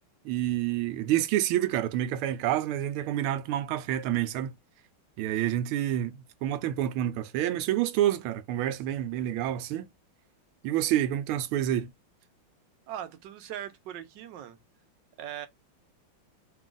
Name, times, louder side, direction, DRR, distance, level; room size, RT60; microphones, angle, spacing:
voice 1, 0.2-4.5 5.2-9.9 10.6-11.9, right 12 dB, 90° right, 1.5 m, -28 dB
voice 2, 12.9-14.6 15.2-15.5, right 11 dB, 70° right, 1.2 m, -39 dB
3.9 x 2.3 x 3.7 m
omnidirectional pair, 2.3 m